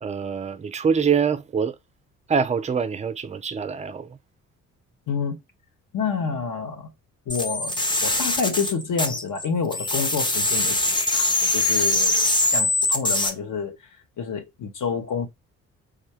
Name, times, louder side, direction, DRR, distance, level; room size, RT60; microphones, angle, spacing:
voice 1, 0.0-1.8 2.3-4.2, right 6 dB, 20° right, 0.4 m, -24 dB
voice 2, 5.1-5.4 5.9-6.9 7.3-10.8 11.1-13.9 14.2-15.3, left 5 dB, 50° left, 0.9 m, -28 dB
sound 1, 7.3-9.5 9.7-13.3, left 2 dB, 10° left, 0.7 m, -22 dB
3.4 x 2.2 x 3.2 m
hypercardioid pair, 45°, 40 cm